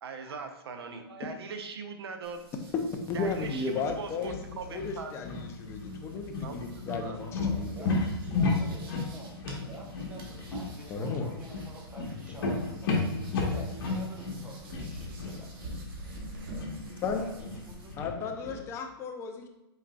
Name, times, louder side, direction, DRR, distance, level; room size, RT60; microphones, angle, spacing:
voice 1, 0.0-2.4 3.1-5.7 6.4-7.2, right 5 dB, 85° right, 6 dB, 0.7 m, -41 dB
sound 1, 2.2-17.9, right 1 dB, 65° right, 1.2 m, -48 dB
voice 2, 2.9-4.4 4.7-7.7 10.9-11.3 17.0-17.2 18.0-19.5, left 4 dB, 20° left, 4 dB, 0.5 m, -34 dB
sound 2, 3.1-18.6, left 3 dB, 65° left, 1.3 m, -34 dB
voice 3, 7.2-15.5 17.1-18.6, right 1 dB, 10° right, -1 dB, 0.8 m, -49 dB
5.5 x 4.0 x 2.3 m, 0.93 s
hypercardioid pair, 145°, 13 cm